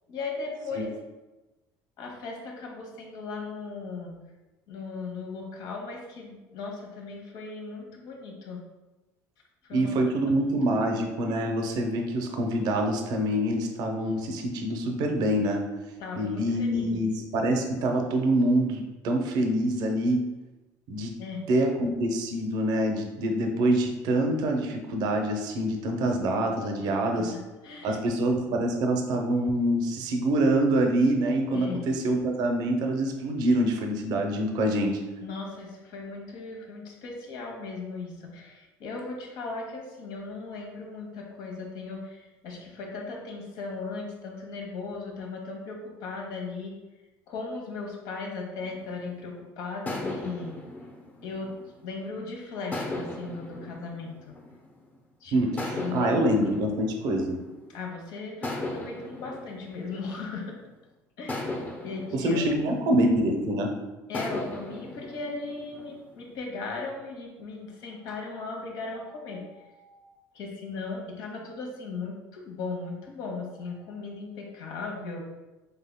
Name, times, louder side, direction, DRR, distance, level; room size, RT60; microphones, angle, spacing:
voice 1, 0.1-0.9 2.0-4.2 4.7-8.6 9.6-9.9 10.3-11.0 16.0-17.0 21.2-21.5 26.8-28.0 31.5-31.9 35.2-46.8 47.3-50.6 51.2-51.5 51.8-54.3 55.2-56.7 57.7-60.6 61.2-61.5 61.8-62.5 64.1-75.2, left 3 dB, 70° left, 0 dB, 1.1 m, -37 dB
voice 2, 9.7-15.6 16.1-20.2 20.9-21.1 21.5-27.3 27.8-34.9 55.3-57.4 62.1-63.7, right 1 dB, 65° right, 3 dB, 0.7 m, -25 dB
sound 1, 48.6-49.3 49.9-52.1 52.7-54.9 55.6-57.8 58.4-60.7 61.3-63.5 64.1-66.4, left 2 dB, 20° left, 0.8 m, -38 dB
5.6 x 3.5 x 2.2 m, 1.1 s
supercardioid pair, 105°, 7 cm